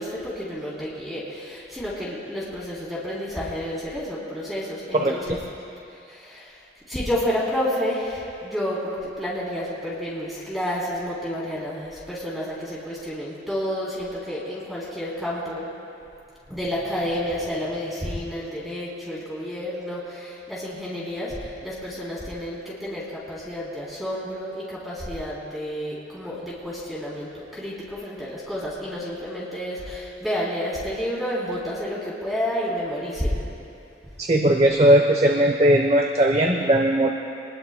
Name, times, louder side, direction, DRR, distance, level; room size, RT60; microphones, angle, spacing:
voice 1, 0.0-5.4 6.1-6.5 6.9-15.6 16.5-33.4, equal, ahead, -8 dB, 3.3 m, -30 dB
voice 2, 34.2-37.1, right 1 dB, 35° right, 2 dB, 0.8 m, -18 dB
25.0 x 20.5 x 2.2 m, 2.6 s
head